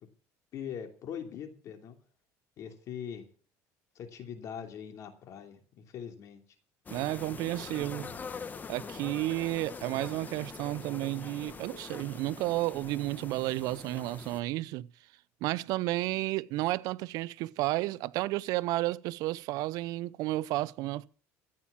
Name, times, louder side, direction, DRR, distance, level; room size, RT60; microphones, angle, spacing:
voice 1, 0.5-2.0 2.6-3.3 3.9-6.4, left 8 dB, 50° left, 2.9 m, -42 dB
sound 1, 6.9-14.4, left 5 dB, 25° left, 1.1 m, -44 dB
voice 2, 6.9-8.1 8.7-14.9 15.4-21.1, right 17 dB, 70° right, 0.6 m, -32 dB
14.5 x 8.8 x 7.3 m
supercardioid pair, 115°, 7 cm